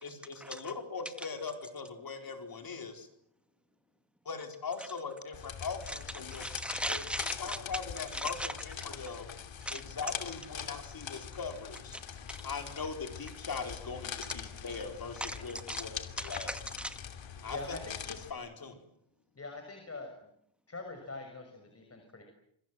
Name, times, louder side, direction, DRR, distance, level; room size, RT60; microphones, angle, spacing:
voice 1, 0.0-3.1 4.2-6.4 6.9-7.0 7.4-9.3 9.7-12.0 12.4-16.5 17.4-17.8 18.0-18.8, left 5 dB, 45° left, 5 dB, 4.7 m, -40 dB
sound 1, 5.3-18.3, left 8 dB, 70° left, 2.9 m, -43 dB
voice 2, 6.3-7.6 8.1-8.5 9.6-9.8 11.9-12.0 12.3-12.4 15.2-15.4 15.7-15.8 16.2-17.0, equal, ahead, 9 dB, 2.2 m, -38 dB
voice 3, 17.5-17.9 19.4-20.1 20.7-22.2, left 3 dB, 30° left, 4 dB, 6.3 m, -43 dB
27.0 x 26.0 x 7.7 m, 0.71 s
wide cardioid pair, 125°, 48 cm